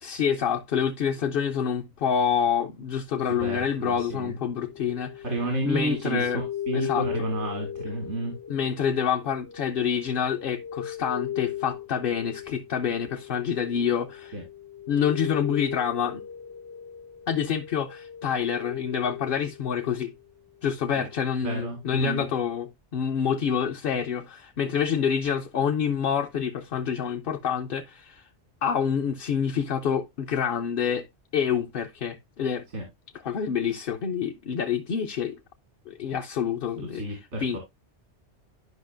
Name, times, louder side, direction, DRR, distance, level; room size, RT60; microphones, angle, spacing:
voice 1, 0.0-5.3 5.7-6.4 6.7-7.1 8.5-14.4 14.9-16.2 17.3-20.1 20.6-28.2 28.6-31.1 31.3-32.6 33.2-35.4 35.9-37.6, left 7 dB, 60° left, 0.8 m, -27 dB
voice 2, 3.4-4.4 5.2-8.3 14.3-14.4 21.0-21.1 21.4-22.2 32.7-32.8 36.9-37.6, right 1 dB, 90° right, 2.3 m, -31 dB
sound 1, 4.0-20.3 20.7-21.5, left 10 dB, 35° left, 0.4 m, -38 dB
11.0 x 5.5 x 2.5 m
omnidirectional pair, 1.2 m